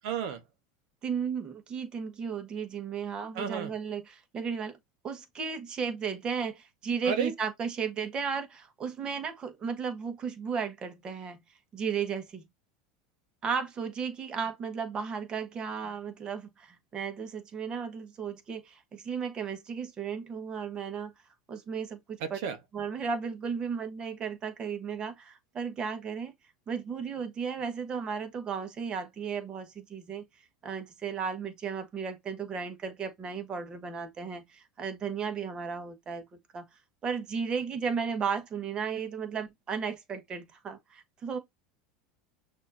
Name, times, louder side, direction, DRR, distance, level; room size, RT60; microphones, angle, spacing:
voice 1, 0.0-0.4 3.3-3.7 7.0-7.3 22.2-22.6, right 7 dB, 70° right, 1.3 m, -32 dB
voice 2, 1.0-4.8 5.0-11.4 11.7-12.5 13.4-21.1 21.5-22.4 22.7-26.3 26.7-30.2 30.6-36.2 36.5-36.7 37.0-41.4, right 6 dB, 30° right, 1.4 m, -34 dB
6.2 x 2.8 x 2.7 m
supercardioid pair, 125°, 3 cm